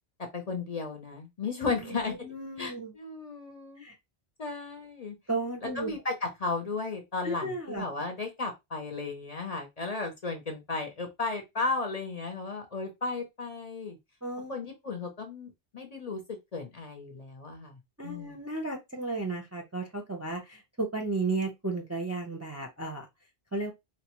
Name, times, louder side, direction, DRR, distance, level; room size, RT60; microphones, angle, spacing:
voice 1, 0.3-2.1 2.6-3.8 4.4-5.2 5.8-14.0 14.5-16.2 16.5-18.4, left 3 dB, 40° left, 0.7 m, -35 dB
voice 2, 1.7-2.9 3.8-3.9 5.3-6.0 7.2-7.8 14.2-14.6 18.0-23.1 23.5-23.7, right 2 dB, 20° right, 0.5 m, -34 dB
4.0 x 2.1 x 2.9 m
omnidirectional pair, 1.1 m